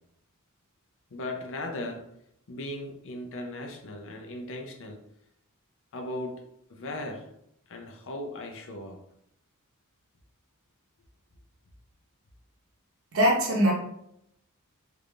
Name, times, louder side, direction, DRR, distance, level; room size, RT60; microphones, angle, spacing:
voice 1, 1.1-2.1 2.5-5.0 5.9-6.4 6.7-7.3 7.7-9.0, left 1 dB, 60° left, 4 dB, 0.6 m, -37 dB
voice 2, 13.1-13.7, equal, 65° right, -3 dB, 0.7 m, -21 dB
3.4 x 2.5 x 3.2 m, 0.75 s
head